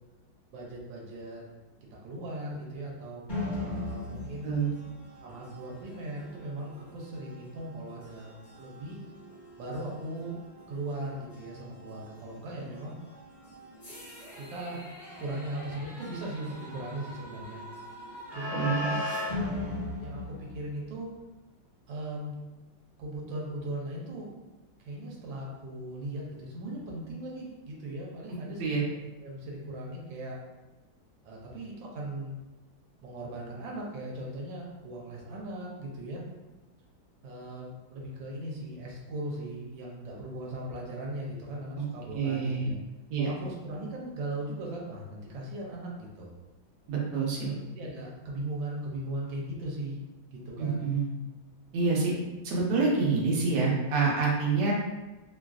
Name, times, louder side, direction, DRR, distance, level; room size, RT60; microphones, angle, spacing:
voice 1, 0.5-1.4 2.0-4.5 5.2-9.0 9.6-10.4 10.7-13.0 14.3-14.8 15.2-17.6 18.3-19.0 19.6-21.1 21.9-22.3 23.0-24.3 24.9-28.6 29.2-30.4 31.2-32.3 33.0-36.2 37.2-42.8 43.2-46.3 47.4-50.0 50.3-50.9, right 1 dB, 90° right, -2 dB, 1.4 m, -38 dB
sound 1, 3.3-21.0, left 2 dB, 30° left, 1.0 m, -40 dB
voice 2, 18.5-18.9 28.6-28.8 41.8-41.9 42.1-42.7 43.1-43.3 46.9-47.5 50.6-51.1 51.7-52.1 52.4-54.7, right 4 dB, 70° right, -3 dB, 1.3 m, -27 dB
3.3 x 2.4 x 2.3 m, 1.1 s
omnidirectional pair, 2.0 m